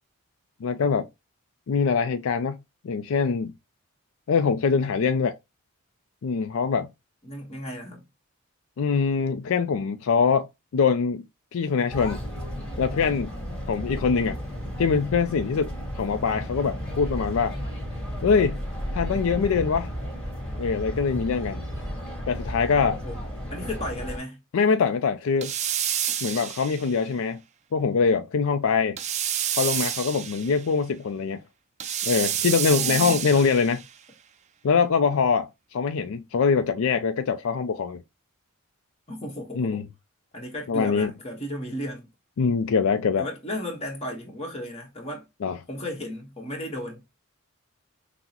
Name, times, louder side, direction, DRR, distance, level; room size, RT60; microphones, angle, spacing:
voice 1, 0.6-1.1 1.7-2.6 2.8-3.5 4.3-5.4 6.2-6.9 8.8-10.5 10.7-11.2 11.5-12.2 12.8-13.3 13.7-14.4 14.8-17.6 18.2-18.6 18.9-19.9 20.6-21.6 22.3-23.0 24.5-25.5 26.2-27.4 27.7-29.0 29.6-31.4 32.1-33.8 34.6-38.0 39.6-39.9 40.7-41.1 42.4-43.3 45.4-45.6, left 5 dB, 65° left, 0.4 m, -23 dB
voice 2, 7.2-8.0 23.0-23.2 23.5-24.4 32.8-33.4 39.1-39.9 40.3-42.1 43.2-45.3 45.7-47.0, left 1 dB, 30° left, 1.2 m, -35 dB
sound 1, 11.9-24.2, equal, 5° left, 1.9 m, -33 dB
sound 2, 25.4-27.0 29.0-30.6 31.8-33.8, right 10 dB, 30° right, 0.3 m, -29 dB
5.8 x 2.1 x 2.8 m
head